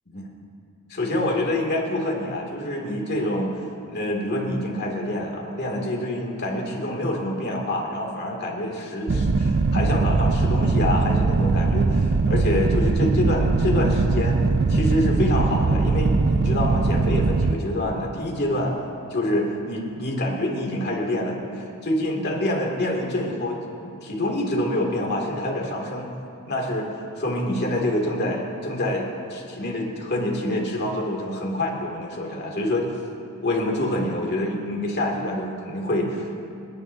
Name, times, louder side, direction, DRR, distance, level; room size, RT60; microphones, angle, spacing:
voice 1, 0.9-3.5 3.9-14.4 14.7-18.8 19.1-23.6 23.8-26.1 26.5-32.9 33.4-36.4, left 1 dB, 50° left, -1 dB, 2.4 m, -26 dB
sound 1, 9.1-17.6, right 3 dB, 50° right, 0.5 m, -21 dB
29.5 x 10.5 x 2.7 m, 2.8 s
head